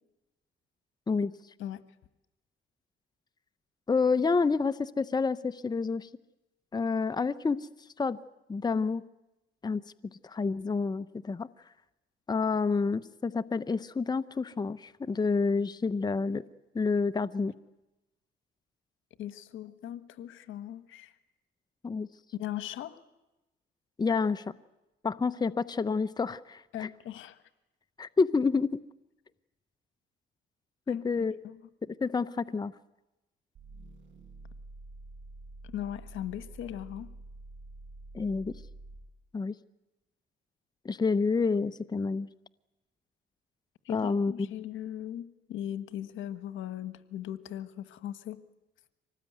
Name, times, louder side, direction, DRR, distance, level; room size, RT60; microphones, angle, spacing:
voice 1, 3.9-6.1 6.7-7.7 8.0-8.2 8.5-9.0 9.6-9.8 10.2-11.5 12.3-16.4 16.7-17.5 21.8-22.1 24.0-24.5 25.0-26.9 28.0-28.8 30.9-31.4 32.0-32.7 38.1-38.5 39.3-39.5 40.8-42.3 43.9-44.5, left 4 dB, 20° left, 12 dB, 0.8 m, -28 dB
voice 2, 19.2-21.1 22.3-23.0 26.7-27.4 30.9-31.6 35.7-37.1 43.8-48.4, left 11 dB, 80° left, 12 dB, 1.3 m, -39 dB
sound 1, 33.5-39.2, right 2 dB, 70° right, 6.8 m, -48 dB
25.0 x 19.0 x 9.3 m, 1.0 s
cardioid pair, 90°, 20 cm